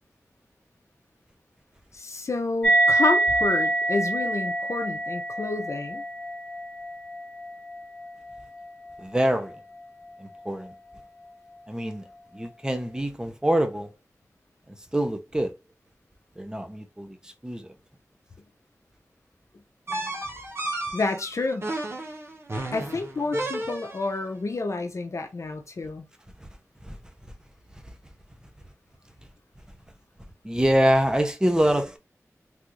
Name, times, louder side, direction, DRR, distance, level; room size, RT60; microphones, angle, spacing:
voice 1, 1.9-6.0 20.9-21.7 22.7-26.1, left 3 dB, 65° left, 0.6 m, -29 dB
sound 1, 2.6-9.5, right 2 dB, 20° left, 0.9 m, -26 dB
voice 2, 9.0-9.6 10.2-10.7 11.7-12.0 12.3-13.9 14.9-15.5 16.4-17.7 26.8-27.0 30.4-32.0, equal, 15° right, 0.8 m, -25 dB
sound 2, 19.9-24.2, right 1 dB, 50° right, 1.0 m, -33 dB
3.4 x 2.5 x 3.0 m
wide cardioid pair, 55°, 6 cm